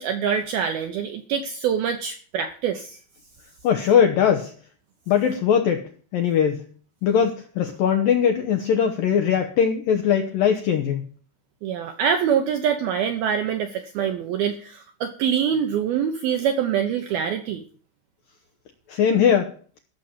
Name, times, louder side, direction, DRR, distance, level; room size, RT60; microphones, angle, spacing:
voice 1, 0.0-3.0 11.6-17.6, right 8 dB, 75° right, 6 dB, 2.2 m, -25 dB
voice 2, 3.6-4.5 5.1-6.6 7.0-11.1 18.9-19.5, left 8 dB, 80° left, 5 dB, 2.1 m, -20 dB
14.5 x 7.1 x 7.4 m, 0.43 s
omnidirectional pair, 5.6 m